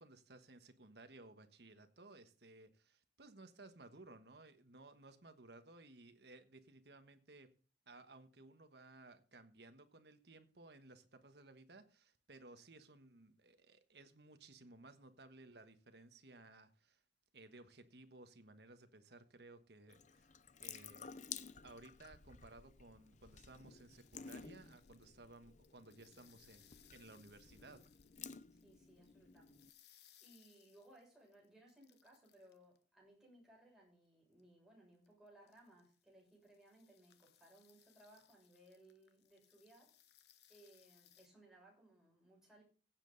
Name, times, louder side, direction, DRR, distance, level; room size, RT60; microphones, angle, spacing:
voice 1, 0.0-7.5 7.9-17.0 17.3-20.3 20.6-21.1 21.6-27.9, right 2 dB, 65° right, 1.4 m, -59 dB
Water tap faucet / Sink (filling or washing) / Drip, 19.9-29.7, left 7 dB, 45° left, 0.6 m, -54 dB
sound 1, 23.2-32.8 34.3-34.4 35.0-41.3, left 11 dB, 65° left, 1.1 m, -70 dB
voice 2, 28.5-39.9 40.5-42.6, right 1 dB, 5° right, 6.8 m, -64 dB
16.0 x 7.7 x 4.0 m
head